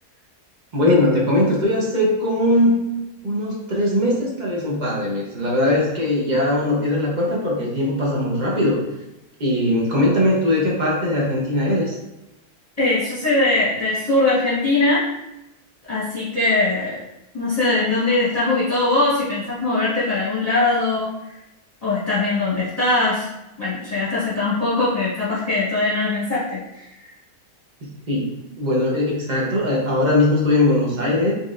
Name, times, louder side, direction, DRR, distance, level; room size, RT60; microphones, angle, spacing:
voice 1, 0.7-2.8 3.2-8.8 9.4-11.9 27.8-31.3, left 1 dB, 35° right, -4 dB, 0.7 m, -20 dB
voice 2, 12.8-15.0 15.9-17.0 17.3-21.4 21.8-23.3 23.6-27.1, left 2 dB, 25° left, -12 dB, 1.1 m, -21 dB
4.1 x 3.1 x 2.4 m, 0.95 s
omnidirectional pair, 1.7 m